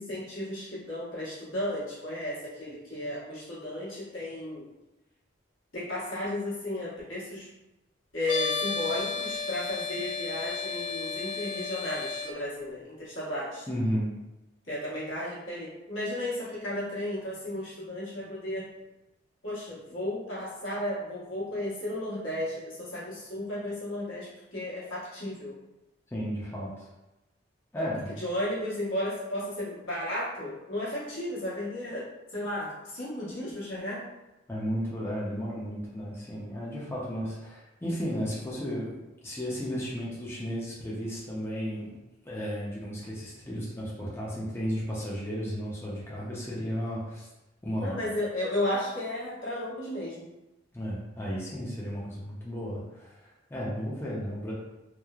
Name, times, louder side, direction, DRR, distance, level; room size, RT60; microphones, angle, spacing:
voice 1, 0.0-4.7 5.7-7.5 8.1-13.7 14.7-18.7 19.4-25.5 27.7-27.9 28.2-32.1 32.3-34.0 47.8-50.3, left 1 dB, 85° left, -8 dB, 1.1 m, -34 dB
sound 1, 8.2-12.3, left 4 dB, 70° left, 0.4 m, -33 dB
voice 2, 13.7-14.1 26.1-26.9 27.7-28.2 34.5-41.9 42.2-47.3 47.6-48.0 50.7-54.5, equal, 10° left, -6 dB, 0.5 m, -34 dB
3.0 x 2.0 x 2.3 m, 0.97 s
head